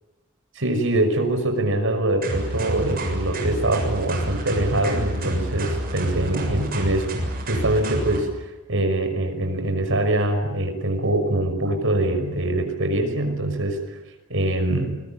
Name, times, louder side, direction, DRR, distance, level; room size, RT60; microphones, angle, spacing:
voice 1, 0.5-8.3 8.7-14.0 14.3-15.0, right 1 dB, 60° right, 6 dB, 5.8 m, -23 dB
sound 1, 2.2-8.2, right 1 dB, 45° right, 7.1 m, -28 dB
28.0 x 22.0 x 9.0 m, 1.1 s
head